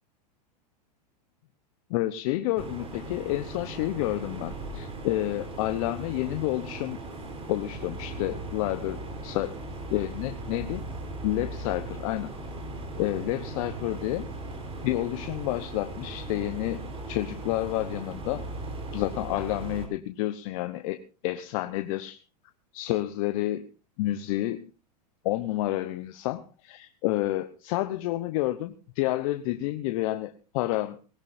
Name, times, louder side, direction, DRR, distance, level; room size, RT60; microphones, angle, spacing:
voice 1, 1.9-7.0 7.5-9.6 9.9-10.8 11.2-12.3 13.0-14.3 14.8-18.4 18.9-22.2 22.7-23.6 24.0-24.7 25.2-31.1, left 16 dB, 55° left, 10 dB, 0.9 m, -30 dB
sound 1, 2.6-19.9, right 2 dB, 25° right, 4.0 m, -38 dB
19.0 x 17.0 x 2.6 m, 0.33 s
hypercardioid pair, 105°, 21 cm